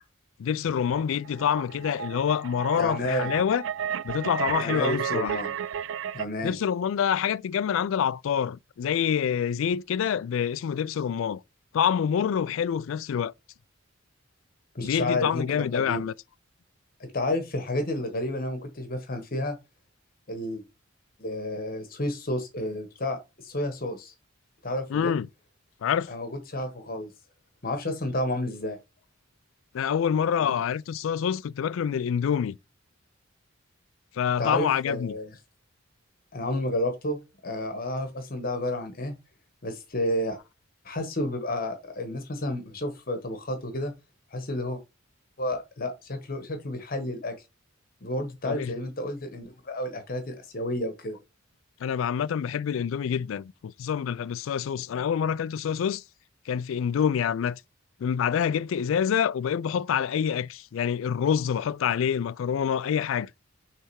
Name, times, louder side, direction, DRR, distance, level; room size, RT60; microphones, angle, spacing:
voice 1, 0.4-3.6 4.0-5.3 6.4-11.4 11.7-13.3 14.8-16.1 24.9-25.3 25.8-26.1 29.7-32.6 34.2-35.1 48.5-48.8 51.8-56.0 56.5-57.6 58.0-63.3, left 8 dB, 70° left, 0.3 m, -26 dB
sound 1, 0.7-6.3, right 8 dB, 65° right, 0.3 m, -33 dB
voice 2, 2.8-3.3 4.6-5.5 6.1-6.5 14.7-16.0 17.0-19.5 20.3-20.6 21.2-23.2 23.4-24.1 24.6-25.1 26.1-27.1 27.6-28.8 30.4-30.6 34.4-35.3 36.3-39.1 39.6-40.4 40.8-43.9 44.3-44.8 45.4-47.3 48.0-51.2, left 1 dB, 45° left, 1.1 m, -31 dB
6.4 x 3.4 x 4.6 m
head